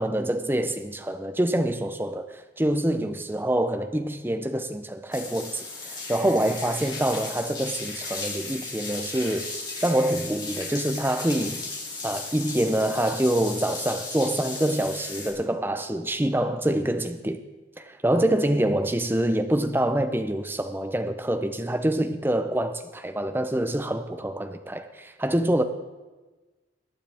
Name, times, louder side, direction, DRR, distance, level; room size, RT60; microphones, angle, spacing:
voice 1, 0.0-9.5 9.8-11.6 12.0-17.4 17.8-25.6, right 1 dB, 10° right, 0.7 m, -26 dB
sound 1, 5.1-15.3, left 3 dB, 20° left, 2.7 m, -36 dB
22.0 x 9.6 x 3.5 m
head